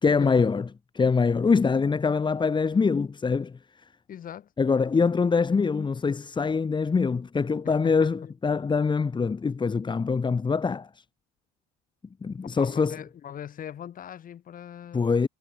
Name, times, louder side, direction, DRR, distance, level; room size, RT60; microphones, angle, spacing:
voice 1, 0.0-0.7 1.0-3.6 4.6-11.0 12.2-13.0 14.9-15.3, left 5 dB, 25° left, 1.9 m, -24 dB
voice 2, 4.1-4.5 7.6-8.3 12.4-15.1, left 9 dB, 45° left, 3.7 m, -40 dB
hypercardioid pair, 75°, 20 cm